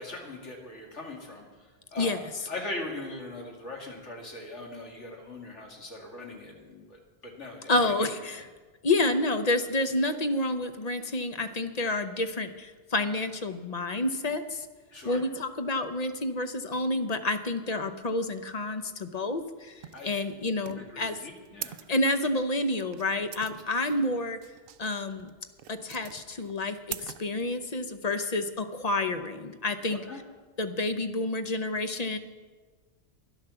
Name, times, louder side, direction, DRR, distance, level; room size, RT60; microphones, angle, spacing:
voice 1, 0.0-1.5 1.9-8.1 14.9-15.2 19.9-20.1 20.7-21.8 29.9-30.2, left 2 dB, 90° left, 0 dB, 2.6 m, -40 dB
voice 2, 7.7-8.5 8.8-14.7 15.0-21.2 21.9-24.4 24.8-25.3 25.7-30.0 30.6-32.2, left 2 dB, 40° left, 9 dB, 0.8 m, -29 dB
sound 1, 19.8-28.0, right 10 dB, 65° right, 0.7 m, -44 dB
12.0 x 11.0 x 7.0 m, 1.4 s
omnidirectional pair, 1.2 m